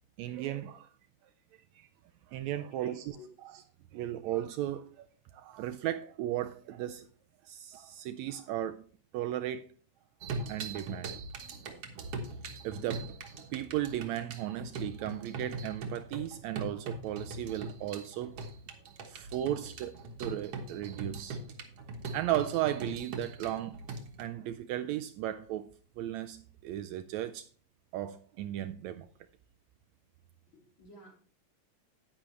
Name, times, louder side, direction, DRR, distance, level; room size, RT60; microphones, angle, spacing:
voice 1, 0.2-0.9 1.7-1.9 2.3-3.2 3.4-3.6 3.9-5.1 5.3-7.1 7.4-8.9 9.1-9.7 10.5-11.2 12.6-13.1 13.5-18.4 19.1-21.4 22.1-23.8 24.2-27.5 27.9-29.1, right 13 dB, 80° right, 1.7 m, -35 dB
voice 2, 2.7-3.3 30.5-31.1, left 2 dB, 40° left, 3.8 m, -54 dB
sound 1, 10.2-24.2, right 3 dB, 60° right, 2.1 m, -41 dB
10.0 x 9.5 x 3.2 m
omnidirectional pair, 3.4 m